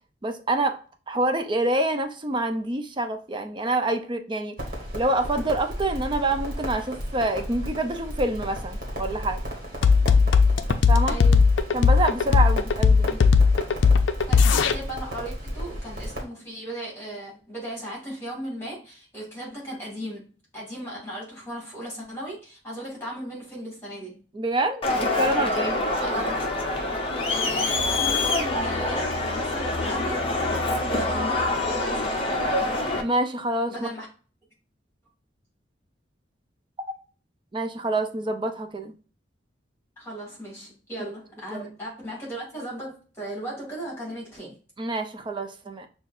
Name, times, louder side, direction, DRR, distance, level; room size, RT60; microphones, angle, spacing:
voice 1, 0.2-0.8 1.1-4.5 4.9-9.4 10.9-11.2 11.7-13.2 24.3-25.8 33.0-33.9 37.5-38.9 41.5-41.6 44.8-45.9, right 2 dB, 25° right, 0.5 m, -26 dB
Crackle, 4.6-16.2, equal, 50° right, 1.5 m, -34 dB
sound 1, 9.8-14.7, left 5 dB, 90° left, 0.4 m, -17 dB
voice 2, 10.0-10.4 11.1-11.4 14.3-20.2 20.5-24.2 26.0-26.5 27.3-30.2 30.8-32.2 33.7-34.1 40.0-44.6, right 1 dB, 15° left, 2.1 m, -36 dB
Crowd, 24.8-33.0, left 2 dB, 30° left, 0.6 m, -25 dB
5.7 x 2.4 x 2.5 m
head